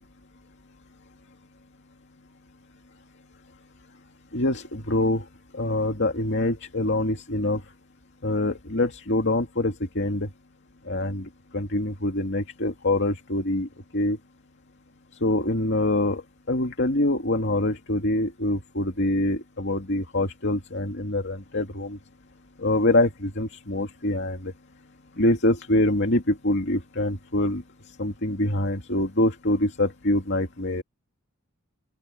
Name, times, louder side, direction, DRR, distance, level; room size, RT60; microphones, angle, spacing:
voice 1, 4.3-5.2 5.5-7.6 8.2-10.3 10.9-13.7 13.9-14.2 15.2-16.2 16.5-22.0 22.6-24.5 25.2-27.6 28.0-30.8, left 1 dB, 60° left, 2.3 m, -25 dB
open air
head